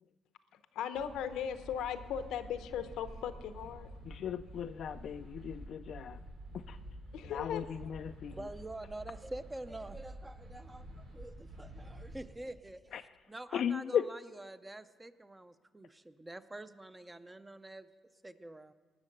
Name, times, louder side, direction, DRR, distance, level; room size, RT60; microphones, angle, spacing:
voice 1, 0.7-3.9 7.1-7.9, left 8 dB, 90° left, 11 dB, 0.7 m, -38 dB
sound 1, 0.9-12.2, right 1 dB, 85° right, 3.2 m, -49 dB
voice 2, 4.1-6.2 6.7-6.8 7.3-8.4 12.9-13.0 13.5-14.0, left 8 dB, 65° left, 8 dB, 0.3 m, -36 dB
voice 3, 8.3-17.9 18.2-18.7, right 2 dB, 15° right, 11 dB, 0.6 m, -47 dB
19.0 x 6.6 x 6.6 m, 1.5 s
cardioid pair, 90°, 0 cm